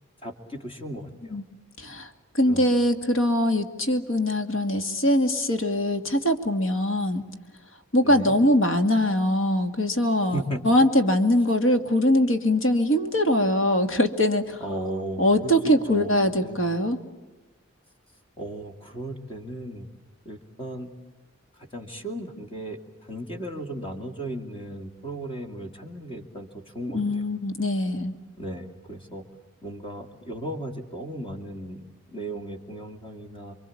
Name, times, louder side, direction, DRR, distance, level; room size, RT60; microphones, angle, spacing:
voice 1, 0.2-1.4 2.5-2.7 8.0-8.3 10.3-10.7 14.6-16.7 18.4-19.9 20.2-20.9 21.5-27.2 28.4-29.2 29.6-33.6, right 1 dB, 25° left, 4 dB, 2.4 m, -36 dB
voice 2, 1.8-2.1 2.4-7.2 7.9-14.6 15.2-17.0 26.9-28.2, left 1 dB, 70° left, 6 dB, 2.4 m, -22 dB
28.5 x 24.0 x 8.7 m, 1.1 s
head